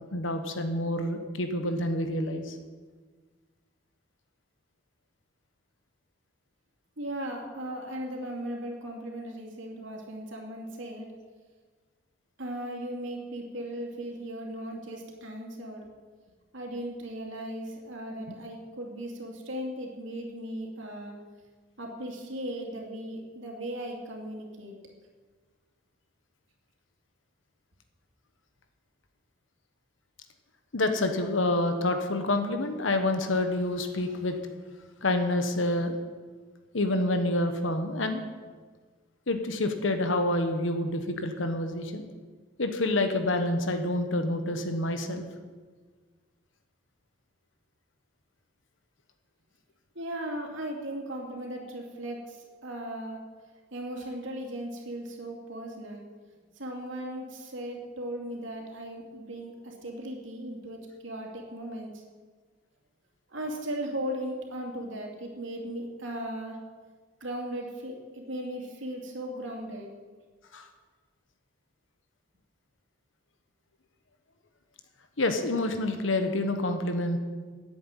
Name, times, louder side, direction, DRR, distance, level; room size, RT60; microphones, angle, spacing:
voice 1, 0.0-2.5 18.3-18.4 30.7-34.4 35.0-35.9 36.7-38.2 39.3-42.0 42.6-45.2 70.5-70.6 75.2-77.2, left 2 dB, 80° left, 7 dB, 1.2 m, -28 dB
voice 2, 7.0-11.1 12.4-15.9 16.5-21.2 21.8-24.8 49.9-53.2 53.7-56.1 56.6-62.0 63.3-66.6 67.2-69.9, right 1 dB, 80° right, 0 dB, 2.7 m, -37 dB
11.0 x 7.9 x 9.0 m, 1.5 s
head